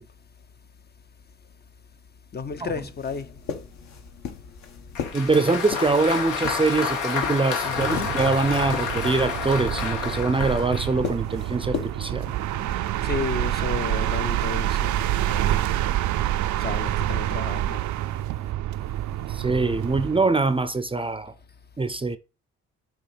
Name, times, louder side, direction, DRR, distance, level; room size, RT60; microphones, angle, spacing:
voice 1, 2.3-3.3 7.6-8.1 13.0-15.6 16.6-17.8, left 5 dB, 35° left, 0.6 m, -32 dB
sound 1, 2.5-12.9, left 6 dB, 65° left, 1.3 m, -38 dB
Applause, 4.9-11.0, left 6 dB, 85° left, 1.7 m, -29 dB
voice 2, 5.1-12.3 19.3-21.3 21.8-22.2, right 3 dB, 20° right, 0.6 m, -23 dB
sound 2, 7.6-20.3, right 13 dB, 70° right, 0.5 m, -27 dB
6.9 x 3.1 x 5.2 m
cardioid pair, 90°, 30 cm